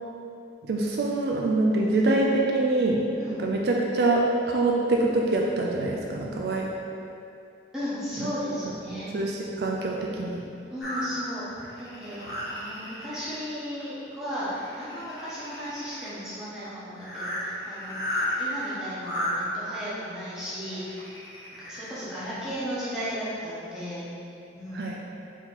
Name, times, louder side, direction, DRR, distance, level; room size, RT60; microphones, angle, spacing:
voice 1, 0.6-3.0 3.4-4.2 4.5-6.7 8.2-8.3 8.9-10.4 24.7-25.0, right 2 dB, 65° right, -1 dB, 0.3 m, -25 dB
voice 2, 7.7-9.1 10.7-11.4 11.8-12.2 12.5-21.2 21.7-24.1 24.5-24.9, equal, 5° right, -12 dB, 1.1 m, -35 dB
sound 1, 10.8-13.3 13.8-14.1 14.4-16.1 16.6-16.7 16.9-19.3 20.4-21.9 22.5-22.6 23.0-23.1, left 1 dB, 70° left, 1.0 m, -33 dB
4.4 x 2.9 x 3.9 m, 2.6 s
head